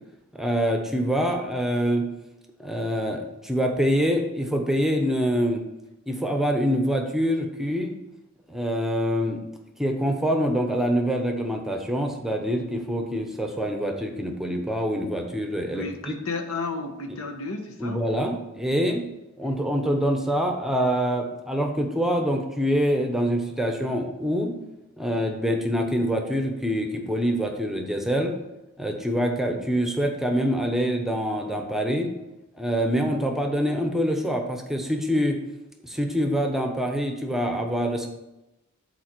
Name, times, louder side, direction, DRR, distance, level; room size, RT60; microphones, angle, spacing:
voice 1, 0.3-2.1 2.6-5.6 6.1-7.9 8.5-9.4 9.8-16.2 17.8-19.0 19.4-24.5 25.0-28.3 28.8-32.1 32.5-35.4 35.8-38.1, equal, ahead, 3 dB, 0.8 m, -25 dB
voice 2, 15.7-18.1, left 3 dB, 70° left, 5 dB, 1.1 m, -32 dB
7.6 x 4.4 x 6.0 m, 0.94 s
head